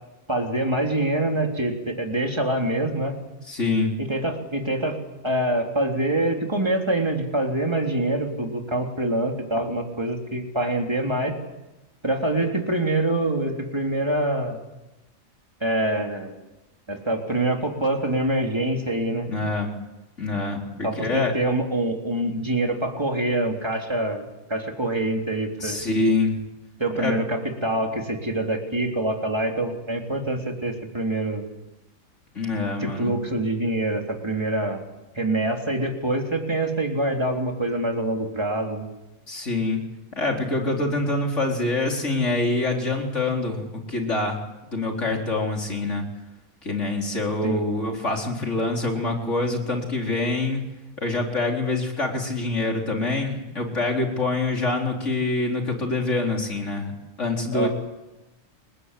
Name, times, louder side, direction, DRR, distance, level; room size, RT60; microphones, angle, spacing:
voice 1, 0.3-3.1 4.0-5.0 5.2-11.4 12.0-14.6 15.6-16.3 16.9-19.3 20.8-25.8 26.8-31.4 32.8-34.8 35.2-38.9 47.4-47.6 57.5-57.7, right 1 dB, 20° right, 2 dB, 3.4 m, -25 dB
voice 2, 3.5-4.0 19.2-19.8 20.2-21.3 25.6-26.4 26.9-27.2 32.3-33.1 39.3-39.8 40.2-44.4 44.7-46.0 46.6-50.6 51.0-56.9 57.2-57.7, left 2 dB, 60° left, 1 dB, 4.5 m, -25 dB
29.0 x 20.0 x 8.3 m, 1.0 s
omnidirectional pair, 1.4 m